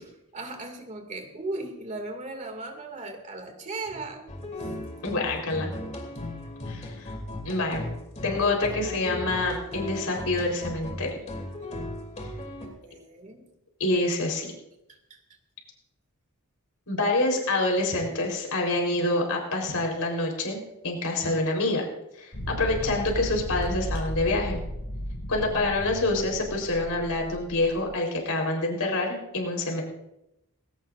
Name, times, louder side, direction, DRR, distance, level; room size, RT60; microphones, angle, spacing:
voice 1, 0.3-4.3 4.6-4.7 12.8-13.4 15.1-15.2, right 2 dB, 35° right, 4 dB, 2.3 m, -37 dB
sound 1, 4.3-12.7, left 1 dB, 30° left, 2.8 m, -36 dB
voice 2, 5.0-5.7 6.7-7.1 7.4-7.8 8.2-11.1 13.8-14.5 16.9-21.8 22.1-24.6 25.3-29.8, left 2 dB, 85° left, 1 dB, 4.0 m, -27 dB
sound 2, 22.3-27.9, equal, 55° left, 6.6 m, -35 dB
19.5 x 17.0 x 2.6 m, 0.85 s
head